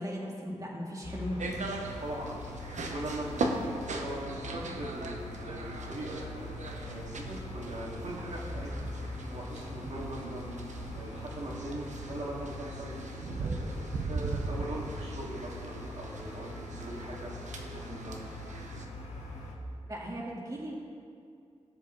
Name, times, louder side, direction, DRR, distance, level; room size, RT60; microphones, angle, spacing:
voice 1, 0.0-1.4 19.9-20.7, equal, 30° right, -4 dB, 1.9 m, -37 dB
sound 1, 1.0-19.5, left 2 dB, 70° left, 1.7 m, -42 dB
sound 2, 1.4-18.9, right 3 dB, 80° right, 1.0 m, -39 dB
voice 2, 2.0-2.4 2.9-6.3 6.8-8.7 9.3-10.5 10.9-12.9 13.4-16.5 16.8-17.3 17.7-18.2, right 1 dB, 60° right, -5 dB, 2.4 m, -40 dB
17.5 x 6.7 x 4.0 m, 2.4 s
cardioid pair, 60°, 12 cm